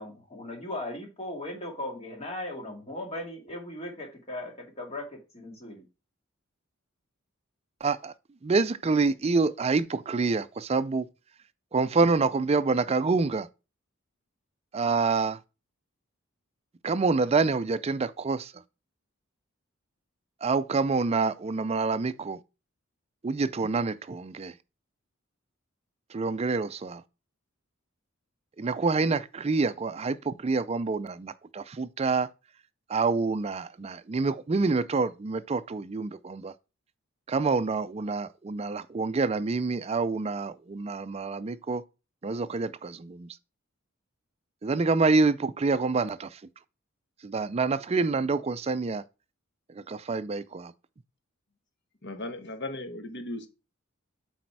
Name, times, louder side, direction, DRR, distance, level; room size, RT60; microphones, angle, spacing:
voice 1, 0.0-5.8, left 1 dB, 30° left, 2.1 m, -38 dB
voice 2, 7.8-8.1 8.4-11.1 11.7-13.5 14.7-15.4 16.8-18.6 20.4-22.4 23.2-24.5 26.1-27.0 28.6-32.3 32.9-36.5 37.3-41.8 42.2-43.3 44.6-46.4 47.2-49.0 49.7-50.7, right 4 dB, 30° right, 0.4 m, -27 dB
voice 3, 52.0-53.5, left 1 dB, 55° left, 1.2 m, -36 dB
8.1 x 4.3 x 4.6 m
head